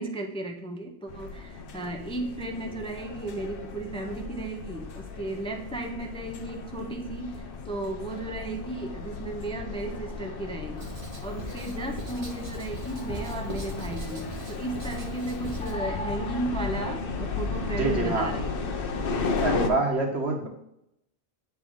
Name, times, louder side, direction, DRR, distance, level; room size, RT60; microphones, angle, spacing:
voice 1, 0.0-10.9 11.2-18.5, right 2 dB, 5° left, 3 dB, 0.6 m, -35 dB
sound 1, 1.1-19.7, left 4 dB, 60° left, 0.9 m, -34 dB
Writing, 10.8-15.8, right 2 dB, 30° right, 1.1 m, -41 dB
voice 2, 17.8-18.3 19.4-20.5, right 2 dB, 85° right, 0 dB, 1.7 m, -26 dB
8.5 x 4.5 x 3.7 m, 0.78 s
omnidirectional pair, 1.1 m